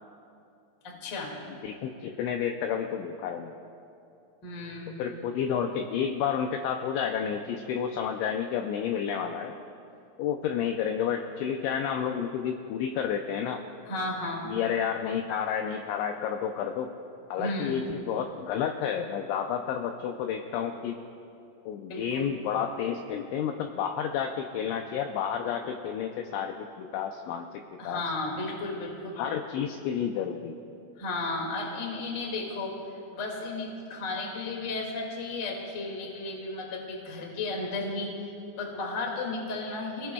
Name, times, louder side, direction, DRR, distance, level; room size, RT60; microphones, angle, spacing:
voice 1, 0.8-1.3 4.4-4.9 13.8-14.5 17.4-17.9 21.9-22.3 27.8-29.2 31.0-32.8 33.1-40.1, left 2 dB, 50° left, -1 dB, 1.3 m, -34 dB
voice 2, 1.6-3.6 5.0-9.5 10.2-13.6 14.5-16.9 17.3-21.0 21.7-28.0 29.2-30.6, left 8 dB, 85° left, 4 dB, 2.6 m, -30 dB
27.0 x 18.0 x 2.3 m, 2.6 s
omnidirectional pair, 5.9 m